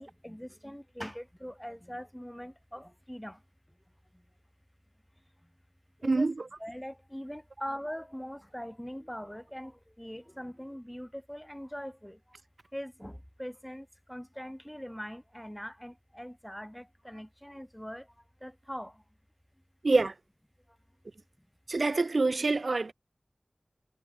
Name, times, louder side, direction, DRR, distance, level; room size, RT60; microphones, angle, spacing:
voice 1, 0.0-3.4 6.0-6.3 6.6-12.2 12.7-18.1 18.4-18.9, equal, 5° left, 6.1 m, -42 dB
voice 2, 6.0-6.3 19.8-20.1 21.7-22.9, right 3 dB, 75° right, 2.0 m, -26 dB
wide cardioid pair, 60°, 0 cm